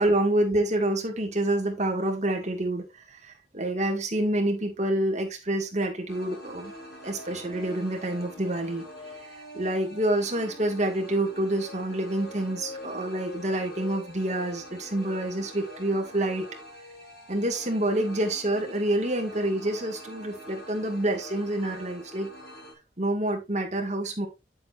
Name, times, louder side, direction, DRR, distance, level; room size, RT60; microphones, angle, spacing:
voice 1, 0.0-6.7 7.0-8.8 9.2-16.6 17.3-22.3 23.0-24.3, right 1 dB, 40° right, 2.0 m, -27 dB
sound 1, 6.1-22.7, equal, 60° left, 3.1 m, -44 dB
8.6 x 7.7 x 2.6 m
head